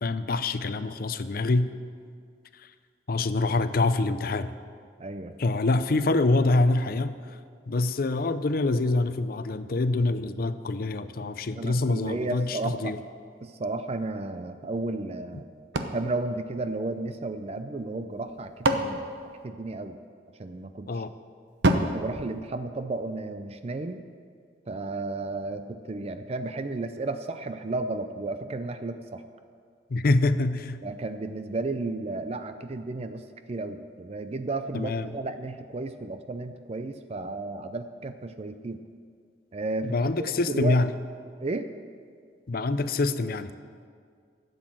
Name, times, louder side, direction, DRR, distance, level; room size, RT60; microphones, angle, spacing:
voice 1, 0.0-1.7 3.1-4.5 5.4-7.2 7.7-13.0 20.9-21.1 29.9-30.8 34.7-35.1 39.8-40.9 42.5-43.5, left 2 dB, 55° left, 12 dB, 0.6 m, -25 dB
voice 2, 5.0-5.4 11.5-13.0 13.4-15.5 15.9-19.1 19.4-20.0 20.4-21.0 21.8-24.0 24.7-29.2 30.8-38.8 39.5-40.8 41.4-41.7, right 2 dB, 35° right, 9 dB, 0.5 m, -33 dB
sound 1, 15.7-17.3 18.1-20.1 21.6-23.2, right 1 dB, 80° right, 0.8 m, -30 dB
12.5 x 8.1 x 7.6 m, 2.1 s
head